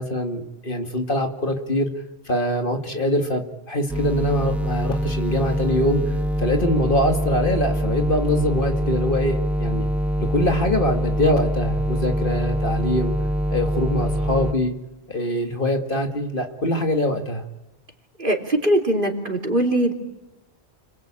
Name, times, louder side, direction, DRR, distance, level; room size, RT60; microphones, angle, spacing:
voice 1, 0.0-1.9 2.3-9.9 10.2-13.1 13.5-14.7 15.1-17.5, left 1 dB, 50° left, 5 dB, 2.3 m, -24 dB
sound 1, 3.9-14.5, equal, ahead, 1.4 m, -24 dB
voice 2, 18.2-19.9, right 1 dB, 50° right, 2 dB, 3.5 m, -21 dB
30.0 x 22.0 x 8.9 m, 1.0 s
omnidirectional pair, 1.1 m